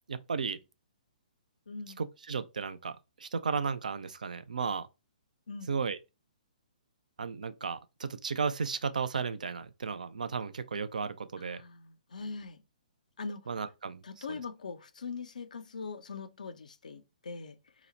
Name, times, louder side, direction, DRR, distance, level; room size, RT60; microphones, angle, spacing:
voice 1, 0.1-0.6 2.0-4.9 5.7-6.0 7.2-11.6 13.5-14.4, right 5 dB, 70° right, 0.4 m, -34 dB
voice 2, 1.7-2.0 5.5-5.7 11.4-12.6 13.2-13.5 14.0-17.6, left 4 dB, 70° left, 0.4 m, -42 dB
2.9 x 2.0 x 3.9 m
figure-of-eight pair, 125°, 4 cm